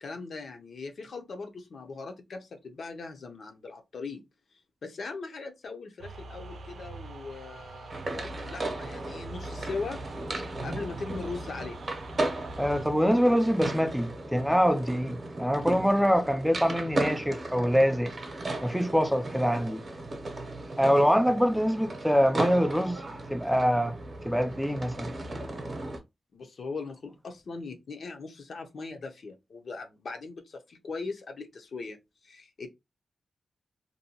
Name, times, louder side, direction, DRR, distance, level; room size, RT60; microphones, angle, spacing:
voice 1, 0.0-4.2 4.8-10.0 10.6-11.8 26.3-32.0 32.2-32.7, left 4 dB, 65° left, 0.6 m, -39 dB
sound 1, 6.0-12.9, right 2 dB, 90° right, 0.5 m, -43 dB
sound 2, 7.9-26.0, right 2 dB, 40° right, 0.7 m, -36 dB
voice 2, 12.6-18.1 18.6-19.8 20.8-23.0 23.3-24.0 24.2-25.1, equal, ahead, 0.3 m, -24 dB
2.6 x 2.2 x 2.8 m
wide cardioid pair, 110°, 0 cm